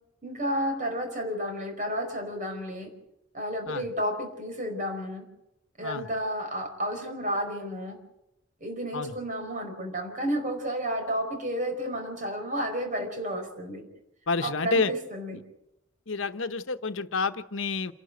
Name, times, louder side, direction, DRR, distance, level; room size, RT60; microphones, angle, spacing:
voice 1, 0.2-2.9 3.3-5.2 5.8-8.0 8.6-13.9 14.4-15.4, equal, 40° right, 5 dB, 5.0 m, -31 dB
voice 2, 14.3-14.9 15.3-15.4 16.1-17.9, left 4 dB, 80° left, 11 dB, 1.0 m, -29 dB
28.0 x 11.5 x 8.0 m, 0.84 s
head